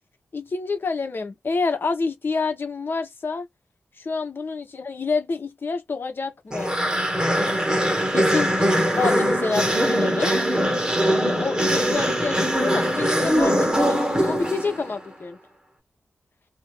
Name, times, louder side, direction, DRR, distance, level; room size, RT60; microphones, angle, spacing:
voice 1, 0.3-3.5 4.0-6.7 7.7-8.5 8.7-10.4 11.2-15.4, left 4 dB, 50° left, 1.2 m, -28 dB
sound 1, 6.5-15.0, equal, 15° right, 1.2 m, -22 dB
2.7 x 2.7 x 3.1 m
wide cardioid pair, 105°, 5 cm